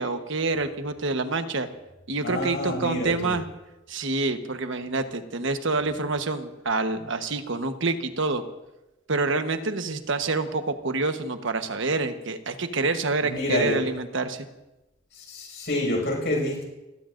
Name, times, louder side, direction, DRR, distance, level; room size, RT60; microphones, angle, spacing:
voice 1, 0.0-1.7 2.1-3.5 3.9-8.4 9.1-14.4, right 3 dB, 65° right, 7 dB, 1.2 m, -27 dB
voice 2, 2.2-3.3 13.2-13.9 15.1-16.6, left 1 dB, 60° left, 0 dB, 6.0 m, -28 dB
29.5 x 17.0 x 2.6 m, 1.0 s
head